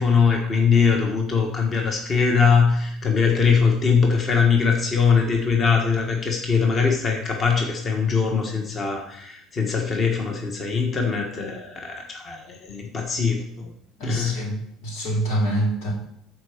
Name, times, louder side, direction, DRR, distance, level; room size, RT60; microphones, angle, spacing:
voice 1, 0.0-13.7 14.0-14.4, left 5 dB, 25° left, 1 dB, 1.3 m, -21 dB
voice 2, 14.0-15.9, right 1 dB, 90° left, -2 dB, 3.5 m, -25 dB
13.5 x 4.7 x 5.0 m, 0.73 s
cardioid pair, 160°, 0 cm